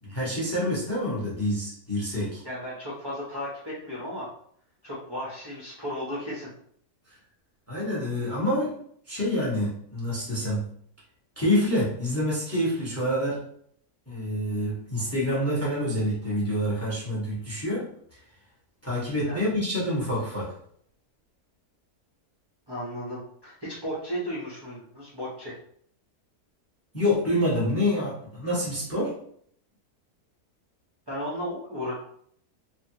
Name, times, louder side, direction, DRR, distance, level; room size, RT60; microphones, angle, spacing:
voice 1, 0.0-2.4 7.7-8.8 9.1-10.6 11.4-13.4 14.1-17.9 18.8-20.5 26.9-29.1, left 1 dB, 10° left, -6 dB, 0.8 m, -27 dB
voice 2, 2.4-4.3 4.8-6.5 19.2-19.4 22.7-25.6 31.1-31.9, equal, 25° right, -7 dB, 0.5 m, -34 dB
3.4 x 2.1 x 2.7 m, 0.65 s
omnidirectional pair, 1.7 m